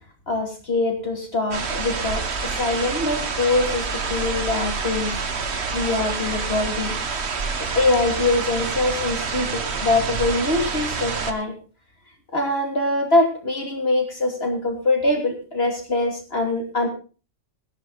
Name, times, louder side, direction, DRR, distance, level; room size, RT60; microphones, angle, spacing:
voice 1, 0.3-5.2 5.7-7.0 7.6-11.5 12.3-16.9, left 2 dB, 55° left, 3 dB, 3.0 m, -23 dB
sound 1, 1.5-11.3, right 5 dB, 65° right, 1.6 m, -27 dB
16.5 x 11.5 x 4.0 m, 0.36 s
omnidirectional pair, 1.2 m